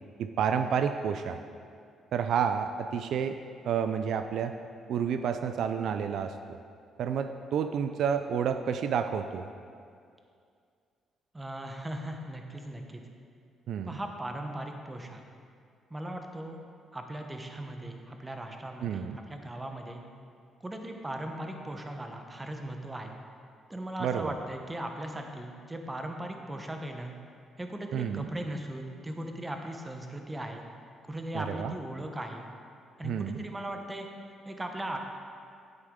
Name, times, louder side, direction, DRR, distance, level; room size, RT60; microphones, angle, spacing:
voice 1, 0.2-1.4 2.1-3.4 3.6-4.5 4.9-6.6 7.0-9.5 13.7-14.0 18.8-19.2 24.0-24.3 27.9-28.3 31.3-31.7 33.0-33.4, right 7 dB, 70° right, 8 dB, 0.4 m, -30 dB
voice 2, 11.3-13.0 13.8-15.2 15.9-16.6 16.9-20.0 20.6-23.1 23.7-27.1 27.6-30.7 31.1-32.5 33.0-34.1 34.4-35.0, right 1 dB, 15° right, 4 dB, 0.9 m, -38 dB
10.0 x 8.9 x 3.7 m, 2.3 s
cardioid pair, 130°, 0 cm